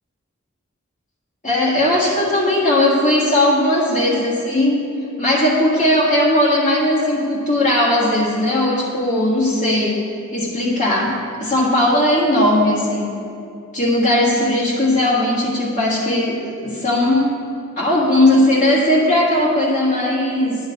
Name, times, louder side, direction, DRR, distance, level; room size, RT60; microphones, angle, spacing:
voice 1, 1.4-4.8 5.2-10.0 10.3-13.1 13.7-17.4 17.8-20.6, left 1 dB, 35° left, -8 dB, 1.6 m, -17 dB
11.0 x 10.5 x 4.1 m, 2.6 s
head